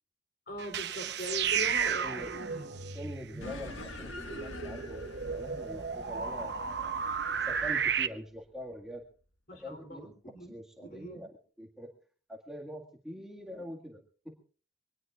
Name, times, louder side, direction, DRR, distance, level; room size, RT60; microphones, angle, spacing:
voice 1, 0.5-2.7 9.5-10.5 10.8-11.2 13.5-13.6, left 1 dB, 50° left, 5 dB, 3.4 m, -41 dB
sound 1, 0.6-8.1, right 7 dB, 55° right, 0.9 m, -33 dB
voice 2, 2.9-7.0 7.4-9.0 9.6-10.1 10.4-11.9 12.3-14.3, equal, ahead, -1 dB, 1.9 m, -44 dB
sound 2, 3.4-8.2, left 2 dB, 85° left, 1.5 m, -46 dB
24.0 x 19.0 x 2.5 m, 0.41 s
head